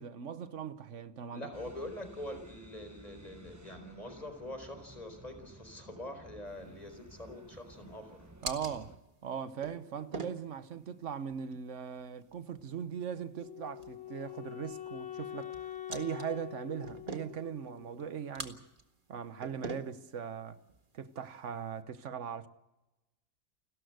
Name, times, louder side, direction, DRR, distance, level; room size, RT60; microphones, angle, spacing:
voice 1, 0.0-1.5 8.4-8.9 9.2-18.6 19.1-20.6 20.9-22.5, right 7 dB, 90° right, 1.3 m, -40 dB
voice 2, 1.3-8.3, left 1 dB, 35° left, 4.7 m, -44 dB
sound 1, 1.5-9.0, right 1 dB, 15° right, 1.1 m, -54 dB
sound 2, 6.5-21.8, right 3 dB, 45° right, 1.9 m, -49 dB
Wind instrument woodwind instrument, 13.4-18.4, left 12 dB, 60° left, 1.3 m, -45 dB
30.0 x 13.0 x 8.0 m
omnidirectional pair, 1.2 m